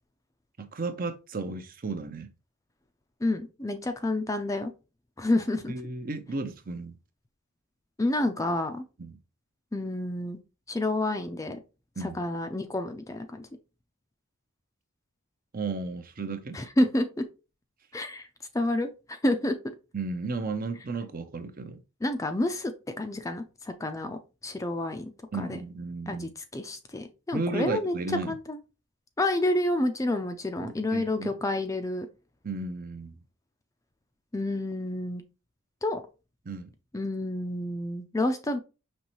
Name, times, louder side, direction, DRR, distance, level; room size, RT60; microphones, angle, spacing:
voice 1, 0.6-2.3 5.7-7.0 9.0-9.2 12.0-12.2 15.5-16.6 19.9-21.8 25.3-26.3 27.3-28.4 30.6-31.3 32.4-33.2 36.5-36.7, right 3 dB, 40° right, 0.6 m, -34 dB
voice 2, 3.2-4.7 5.2-5.7 8.0-8.8 9.7-10.4 10.7-11.6 12.0-13.5 16.5-17.2 17.9-18.3 18.5-19.7 22.0-22.7 23.0-25.1 25.4-25.6 26.1-27.9 28.3-28.6 29.2-32.1 34.3-35.2 35.8-36.0 36.9-38.6, left 1 dB, 15° left, 0.4 m, -29 dB
5.4 x 3.1 x 3.0 m
head